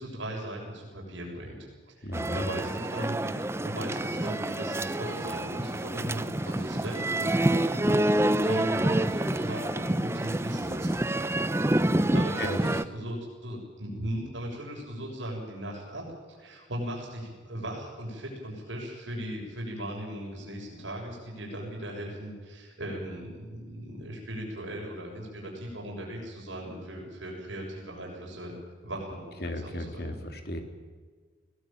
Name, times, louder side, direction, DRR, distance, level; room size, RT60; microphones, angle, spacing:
voice 1, 0.0-11.0 12.1-28.6 28.8-30.2, right 1 dB, 75° right, -1 dB, 7.0 m, -38 dB
voice 2, 2.0-2.5 12.1-12.6 14.0-14.1 29.4-30.6, left 1 dB, 50° left, 5 dB, 3.0 m, -35 dB
sound 1, 2.1-12.8, right 1 dB, 15° right, 0.6 m, -27 dB
21.5 x 17.5 x 9.0 m, 1.5 s
head